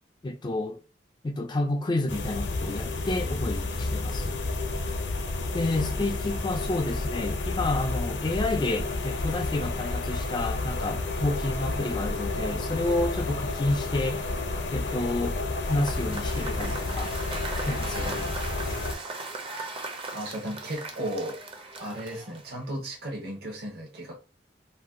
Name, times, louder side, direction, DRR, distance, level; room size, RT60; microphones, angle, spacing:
voice 1, 0.2-0.8 1.2-4.4 5.5-14.2 14.7-15.4 15.7-17.1 17.7-18.3, left 2 dB, 25° left, 0.3 m, -30 dB
sound 1, 2.1-18.9, left 2 dB, 65° left, 0.6 m, -31 dB
Bowed string instrument, 5.0-9.8, right 3 dB, 85° right, 1.0 m, -48 dB
Cheering / Applause / Crowd, 15.6-22.7, right 3 dB, 30° right, 0.5 m, -38 dB
voice 2, 17.9-18.4 20.1-21.4 21.8-24.1, right 1 dB, 60° right, 0.8 m, -35 dB
2.6 x 2.1 x 3.5 m
head